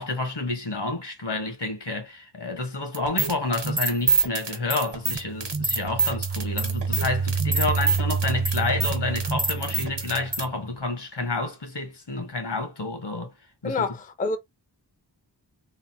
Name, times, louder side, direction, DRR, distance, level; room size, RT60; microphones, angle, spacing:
voice 1, 0.0-13.3 13.6-13.9, left 3 dB, 75° left, 1.1 m, -29 dB
sound 1, 2.9-10.4, right 4 dB, 75° right, 1.1 m, -26 dB
sound 2, 5.0-10.7, right 5 dB, 45° right, 0.5 m, -29 dB
voice 2, 13.6-14.4, left 3 dB, 20° left, 0.4 m, -27 dB
3.4 x 2.0 x 2.7 m
wide cardioid pair, 55°, 42 cm